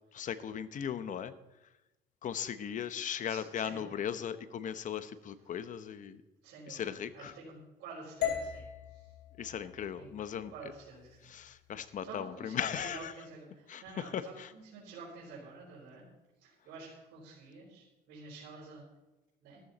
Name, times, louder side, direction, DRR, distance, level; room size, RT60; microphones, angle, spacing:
voice 1, 0.1-1.3 2.2-6.2 6.7-7.3 9.4-10.5 11.2-13.2 13.7-14.5, left 8 dB, 50° left, 13 dB, 0.9 m, -38 dB
voice 2, 3.3-4.0 6.4-9.1 10.0-10.1 10.5-11.3 12.0-16.0 16.4-18.8 19.4-19.6, right 4 dB, 85° right, -6 dB, 4.3 m, -49 dB
sound 1, 8.2-12.3, left 9 dB, 80° left, 2.9 m, -40 dB
13.5 x 13.5 x 4.2 m, 1.0 s
cardioid pair, 110°, 17 cm